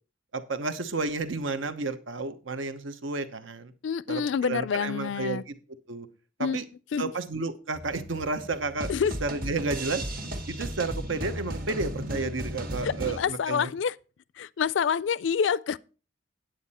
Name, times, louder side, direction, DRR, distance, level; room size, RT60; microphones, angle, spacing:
voice 1, 0.3-3.7 4.1-5.5 5.9-6.1 6.4-6.6 7.0-8.9 9.2-10.0 10.5-13.7, right 3 dB, 80° right, 1.0 m, -31 dB
voice 2, 3.8-5.4 6.4-6.6 6.9-7.1 8.9-9.2 12.8-14.0 14.4-15.8, left 7 dB, 65° left, 0.4 m, -27 dB
sound 1, 7.7-13.2, equal, 50° right, 1.6 m, -35 dB
9.4 x 8.8 x 4.2 m
head